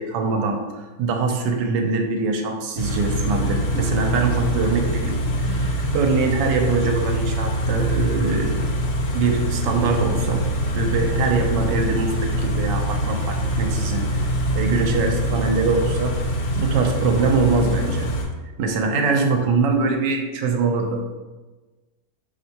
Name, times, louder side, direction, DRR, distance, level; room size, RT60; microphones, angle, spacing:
voice 1, 0.0-5.2 5.9-8.7 9.1-10.5 10.7-14.3 14.6-16.2 16.6-18.0 18.6-21.0, right 4 dB, 90° right, 4 dB, 1.3 m, -23 dB
Car / Idling, 2.8-18.2, equal, 90° left, 1.4 m, -24 dB
voice 2, 5.5-5.9 10.8-11.1 14.5-14.9 18.8-19.5, left 1 dB, 65° left, -5 dB, 0.7 m, -35 dB
4.2 x 3.4 x 2.8 m, 1.2 s
omnidirectional pair, 1.9 m